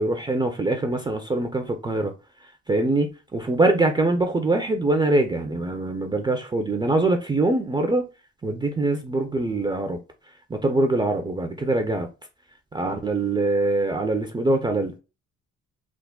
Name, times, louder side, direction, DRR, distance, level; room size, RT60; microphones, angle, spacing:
voice 1, 0.0-2.1 2.7-8.1 8.4-10.0 10.5-12.1 12.7-14.9, right 2 dB, 15° right, 0.3 m, -23 dB
3.4 x 2.1 x 2.2 m
cardioid pair, 90°, 30 cm